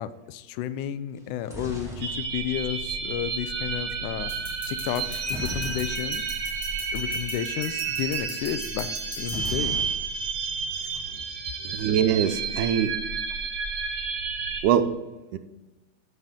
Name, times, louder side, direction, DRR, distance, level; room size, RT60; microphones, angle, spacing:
voice 1, 0.0-4.3 4.7-6.2 6.9-8.9 9.2-9.8, left 10 dB, 80° left, 13 dB, 2.0 m, -32 dB
sound 1, 1.2-3.3 5.2-6.4 6.7-6.8 7.1-7.3 9.2-10.4 10.7-11.3, equal, ahead, 0.8 m, -38 dB
sound 2, 2.0-14.6, right 5 dB, 60° right, 1.3 m, -31 dB
sound 3, 4.3-9.5, left 4 dB, 45° left, 1.6 m, -42 dB
voice 2, 11.6-12.9 14.6-14.9 15.3-15.4, right 9 dB, 80° right, 11 dB, 2.0 m, -23 dB
13.5 x 6.7 x 3.6 m, 1.1 s
omnidirectional pair, 3.6 m